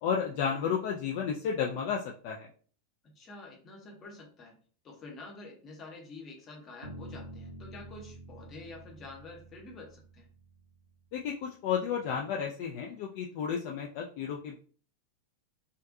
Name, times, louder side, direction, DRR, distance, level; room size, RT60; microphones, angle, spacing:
voice 1, 0.0-2.5 11.1-14.6, left 7 dB, 45° left, 0 dB, 0.3 m, -32 dB
voice 2, 3.0-10.3, left 3 dB, 25° left, 1 dB, 0.8 m, -48 dB
sound 1, 6.8-10.9, right 2 dB, 80° right, 0.5 m, -48 dB
2.5 x 2.2 x 2.5 m, 0.42 s
figure-of-eight pair, 90°, 0 cm